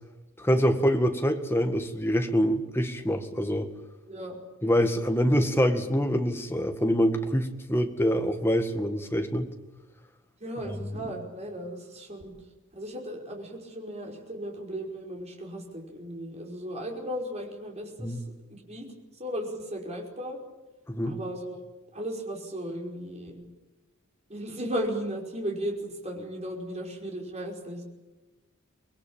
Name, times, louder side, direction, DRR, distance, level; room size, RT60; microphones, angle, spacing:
voice 1, 0.4-3.7 4.6-9.5 10.6-11.1 18.0-18.2 20.9-21.1, equal, 10° left, 6 dB, 1.8 m, -25 dB
voice 2, 10.4-12.3 12.7-18.2 18.5-18.9 19.2-20.4 21.1-21.6 21.9-23.4 24.3-27.8, equal, 30° right, 0 dB, 5.3 m, -36 dB
25.5 x 20.0 x 8.8 m, 1.1 s
head